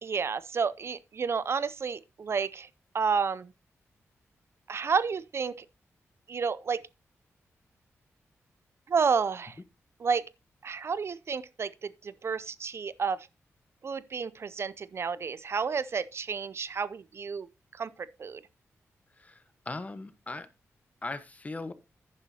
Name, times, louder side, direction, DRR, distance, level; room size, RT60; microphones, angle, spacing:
voice 1, 0.0-2.7 2.9-3.5 4.7-5.6 6.3-6.8 8.9-9.6 10.0-10.3 10.6-13.3 13.8-17.5 17.7-18.4, right 5 dB, 55° right, 0.4 m, -30 dB
voice 2, 19.2-20.5 21.0-21.7, left 3 dB, 25° left, 1.1 m, -39 dB
11.0 x 9.7 x 2.8 m
cardioid pair, 75°, 5 cm